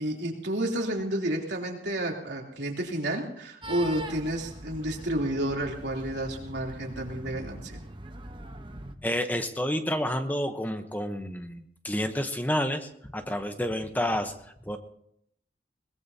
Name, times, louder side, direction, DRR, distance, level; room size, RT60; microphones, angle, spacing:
voice 1, 0.0-7.8, right 1 dB, 80° right, 0 dB, 3.1 m, -31 dB
sound 1, 3.6-9.0, right 1 dB, 25° right, 0.9 m, -42 dB
voice 2, 9.0-14.8, equal, 10° left, 7 dB, 0.8 m, -30 dB
21.5 x 20.0 x 2.8 m, 0.71 s
head